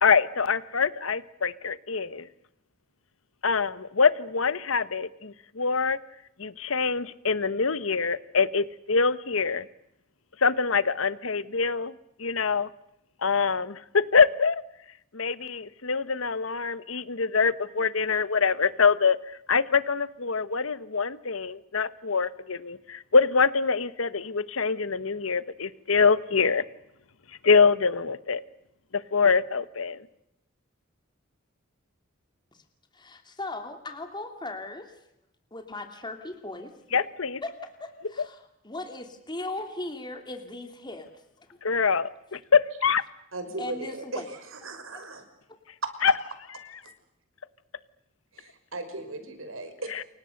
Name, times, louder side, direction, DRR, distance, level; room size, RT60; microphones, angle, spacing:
voice 1, 0.0-2.3 3.4-6.0 6.4-9.7 10.4-11.9 12.2-12.7 13.2-14.6 15.1-19.2 19.5-26.7 27.4-28.4 28.9-30.1 36.9-37.4 38.2-38.3 41.6-43.0 46.0-46.1 49.9-50.0, left 5 dB, 90° left, 15 dB, 1.2 m, -24 dB
voice 2, 32.9-34.9 35.5-36.7 37.4-41.1 41.4-41.6 43.6-44.2, left 2 dB, 20° left, 5 dB, 2.8 m, -38 dB
voice 3, 43.3-45.2 45.8-45.9 46.8-46.9 48.3-49.9, right 2 dB, 90° right, 9 dB, 5.6 m, -37 dB
29.0 x 24.5 x 6.6 m, 0.83 s
head